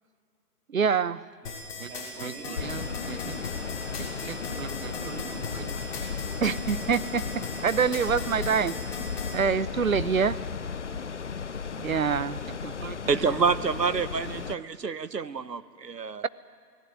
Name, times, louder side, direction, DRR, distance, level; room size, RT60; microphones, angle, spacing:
voice 1, 0.7-1.2 1.8-1.9 2.2-3.2 4.6-5.1 6.4-7.3 7.6-8.8 9.3-10.4 11.8-13.0, right 6 dB, 55° right, 1.0 m, -27 dB
sound 1, 1.4-9.3, left 4 dB, 20° left, 6.9 m, -38 dB
voice 2, 1.8-3.5 3.9-5.8, right 3 dB, 10° right, 2.2 m, -45 dB
sound 2, 2.6-14.5, left 6 dB, 45° left, 0.9 m, -35 dB
voice 3, 13.1-16.2, right 5 dB, 80° right, 1.5 m, -27 dB
28.0 x 17.5 x 9.8 m
figure-of-eight pair, 160°, 49 cm